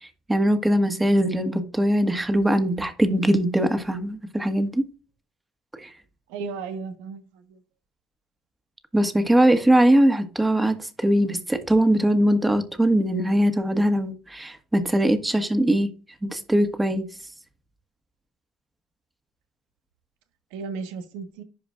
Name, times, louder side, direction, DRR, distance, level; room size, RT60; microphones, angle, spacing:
voice 1, 0.3-4.8 5.7-5.9 8.9-15.9 16.2-17.1, right 1 dB, 15° right, 1.6 m, -21 dB
voice 2, 6.3-7.6 20.5-21.4, right 5 dB, 80° right, 1.3 m, -35 dB
11.0 x 5.1 x 2.5 m
hypercardioid pair, 60°, 0 cm